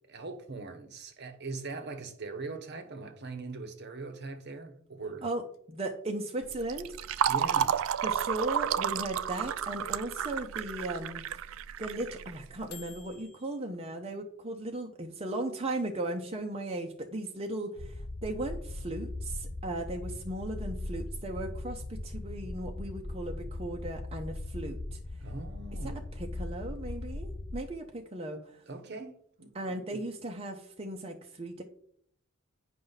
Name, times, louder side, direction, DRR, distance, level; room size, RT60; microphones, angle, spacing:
voice 1, 0.1-5.2 7.3-7.8 25.2-26.0 28.7-29.5 29.8-30.0, right 3 dB, 50° right, 0.9 m, -41 dB
voice 2, 5.2-6.9 8.0-11.2 11.8-25.3 25.8-28.6 29.5-31.6, right 2 dB, 30° right, 0.6 m, -37 dB
sound 1, 5.3-13.6, left 9 dB, 80° left, 0.7 m, -53 dB
Fill (with liquid), 6.4-12.8, right 8 dB, 70° right, 0.3 m, -31 dB
sound 2, 17.8-27.6, left 2 dB, 20° left, 0.3 m, -39 dB
9.3 x 5.3 x 4.0 m
head